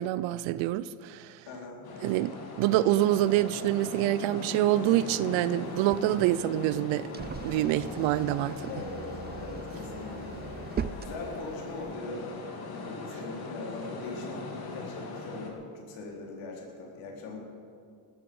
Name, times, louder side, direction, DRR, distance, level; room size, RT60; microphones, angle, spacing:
voice 1, 0.0-1.3 2.0-2.3 2.6-8.6, right 14 dB, 90° right, 0.6 m, -26 dB
voice 2, 1.5-1.8 8.7-12.2 12.6-17.4, left 3 dB, 80° left, 4.1 m, -41 dB
sound 1, 1.8-15.5, left 4 dB, 55° left, 3.1 m, -40 dB
sound 2, 5.7-11.9, right 6 dB, 20° right, 0.5 m, -41 dB
19.0 x 13.0 x 5.4 m
cardioid pair, 105°, 45 cm